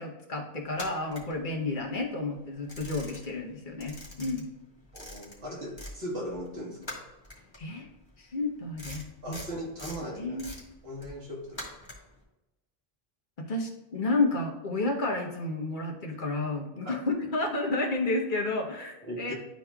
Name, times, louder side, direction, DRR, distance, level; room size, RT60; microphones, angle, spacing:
voice 1, 0.0-4.5 7.6-7.9 8.2-9.4 10.2-10.5 13.4-19.3, left 2 dB, 55° left, 1 dB, 1.1 m, -31 dB
sound 1, 0.7-2.0 2.3-3.5 3.7-6.0 6.3-12.2, left 1 dB, 25° left, 1.5 m, -44 dB
voice 2, 4.9-6.9 9.2-10.4 10.8-11.7 16.8-17.0 19.0-19.3, equal, 75° right, -2 dB, 1.7 m, -38 dB
11.0 x 4.1 x 2.3 m, 1.0 s
omnidirectional pair, 1.0 m